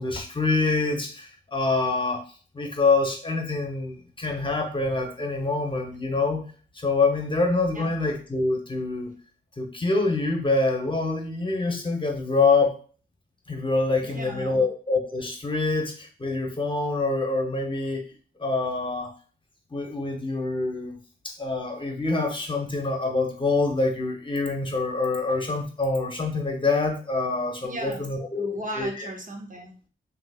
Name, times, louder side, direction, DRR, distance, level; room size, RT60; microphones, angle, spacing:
voice 1, 0.0-2.2 2.5-6.4 6.7-9.1 9.6-12.8 13.5-18.0 18.4-19.1 19.7-21.0 21.2-29.1, left 3 dB, 25° left, 2 dB, 0.9 m, -25 dB
voice 2, 14.0-14.6 27.6-28.1 28.4-29.9, right 1 dB, 40° right, 2 dB, 0.7 m, -36 dB
4.0 x 2.8 x 2.3 m, 0.39 s
cardioid pair, 75°, 20 cm